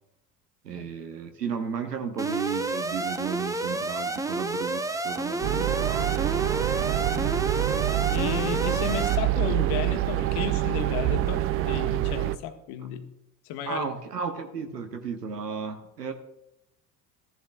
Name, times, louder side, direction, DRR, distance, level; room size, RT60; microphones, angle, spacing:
voice 1, 0.6-6.7 13.6-16.1, right 6 dB, 80° right, 6 dB, 0.9 m, -34 dB
Alarm, 2.2-9.2, right 2 dB, 5° right, 0.7 m, -30 dB
sound 1, 5.4-12.4, right 16 dB, 30° right, 0.3 m, -26 dB
voice 2, 7.1-7.4 7.9-13.0 13.4-13.9, left 9 dB, 50° left, 8 dB, 1.3 m, -33 dB
14.5 x 11.0 x 2.2 m, 0.86 s
figure-of-eight pair, 60°, 48 cm